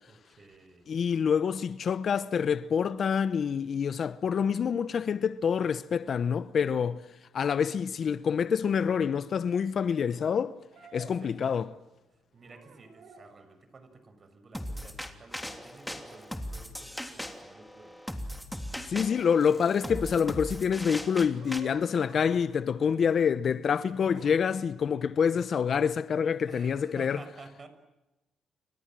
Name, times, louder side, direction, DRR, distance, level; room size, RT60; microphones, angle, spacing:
voice 1, 0.1-0.9 11.2-11.4 12.3-18.0 26.5-27.7, right 3 dB, 40° right, 6.3 m, -52 dB
voice 2, 0.9-7.0 7.3-10.5 10.9-11.6 18.9-27.2, left 7 dB, 55° left, 1.0 m, -27 dB
sound 1, 10.7-12.0 12.4-13.4 16.1-16.4 19.8-23.3 24.0-24.5, right 5 dB, 70° right, 7.3 m, -52 dB
sound 2, 14.5-21.6, equal, 5° left, 3.2 m, -39 dB
30.0 x 26.0 x 7.6 m
cardioid pair, 90°, 0 cm